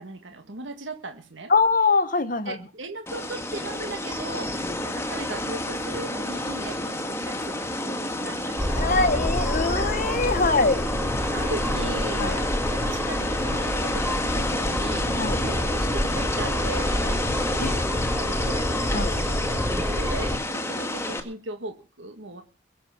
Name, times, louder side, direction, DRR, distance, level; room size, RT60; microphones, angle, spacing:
voice 1, 0.0-1.5 2.5-9.2 10.4-10.6 11.3-17.8 18.2-18.7 19.0-19.3 19.9-22.4, right 2 dB, 75° right, 1.8 m, -38 dB
voice 2, 1.5-2.6 8.8-10.8 12.2-12.4 15.1-15.4 17.6-17.7 18.9-19.1 19.7-19.9, left 3 dB, 45° left, 1.2 m, -23 dB
sound 1, 3.1-21.2, left 1 dB, 15° left, 1.9 m, -29 dB
sound 2, 8.6-20.4, equal, 5° right, 3.8 m, -28 dB
22.5 x 7.6 x 5.8 m
head